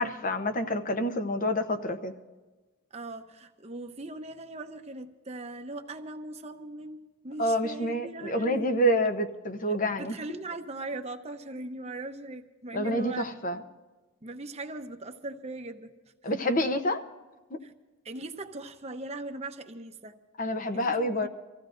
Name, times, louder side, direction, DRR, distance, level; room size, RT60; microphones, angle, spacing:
voice 1, 0.0-2.1 7.4-10.1 12.7-13.6 16.2-17.0 17.5-17.6 20.4-21.3, equal, 40° left, 7 dB, 0.9 m, -28 dB
voice 2, 2.9-8.7 9.7-13.3 14.2-15.9 17.6-17.7 18.0-20.1 20.7-21.3, right 2 dB, 30° right, 6 dB, 0.8 m, -40 dB
25.5 x 15.5 x 2.6 m, 1.2 s
head